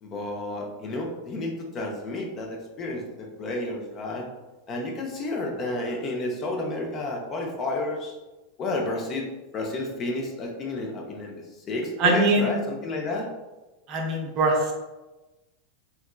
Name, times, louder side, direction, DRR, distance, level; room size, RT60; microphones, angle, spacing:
voice 1, 0.0-4.3 4.7-8.1 8.6-13.3, left 2 dB, 30° left, 0 dB, 0.5 m, -31 dB
voice 2, 12.0-12.5 13.9-14.7, right 2 dB, 40° right, 0 dB, 0.6 m, -22 dB
3.3 x 2.8 x 2.3 m, 1.1 s
figure-of-eight pair, 85°, 0 cm